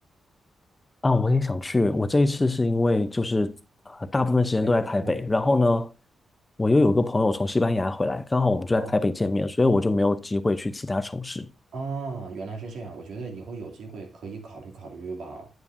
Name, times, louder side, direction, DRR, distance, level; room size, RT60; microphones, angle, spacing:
voice 1, 1.0-3.5 3.9-5.9 6.6-11.5, left 2 dB, 15° left, 0.6 m, -23 dB
voice 2, 11.7-15.5, right 4 dB, 80° right, 2.5 m, -36 dB
9.8 x 8.8 x 2.6 m
wide cardioid pair, 140°, 0 cm